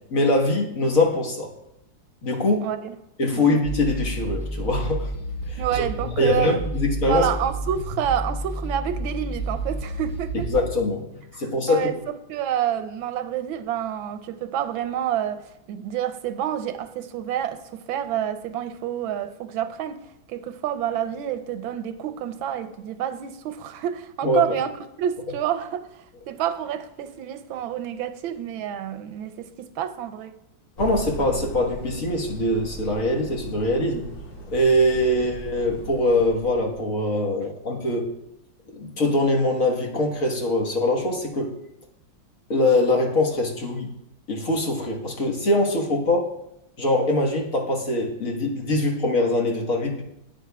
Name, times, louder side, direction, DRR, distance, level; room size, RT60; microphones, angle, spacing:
voice 1, 0.1-1.5 2.2-2.7 3.2-5.1 5.5-5.9 6.2-7.3 10.5-11.0 11.4-11.9 24.2-24.5 30.8-34.1 34.5-38.1 38.7-41.5 42.5-43.9 44.3-46.3 46.8-50.0, left 1 dB, 45° left, 0 dB, 1.6 m, -23 dB
voice 2, 2.6-3.0 3.2-3.5 5.6-6.6 7.0-10.5 11.3-11.4 11.7-20.0 20.3-24.7 25.0-30.4, right 10 dB, 90° right, 10 dB, 1.4 m, -28 dB
sound 1, 3.6-10.7, right 1 dB, 25° left, 2.0 m, -30 dB
sound 2, 30.8-37.0, right 1 dB, 65° left, 2.4 m, -38 dB
13.5 x 9.2 x 2.3 m, 0.83 s
omnidirectional pair, 2.1 m